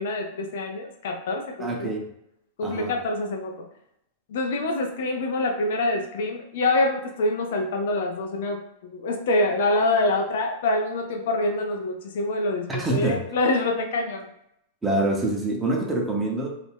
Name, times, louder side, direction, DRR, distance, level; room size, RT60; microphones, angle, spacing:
voice 1, 0.0-1.9 2.6-3.5 4.3-14.3, left 2 dB, 65° left, 3 dB, 0.4 m, -26 dB
voice 2, 1.6-2.1 2.6-2.9 12.7-13.2 14.8-16.5, right 2 dB, 15° right, -1 dB, 0.6 m, -25 dB
2.3 x 2.0 x 3.3 m, 0.78 s
hypercardioid pair, 100°, 0 cm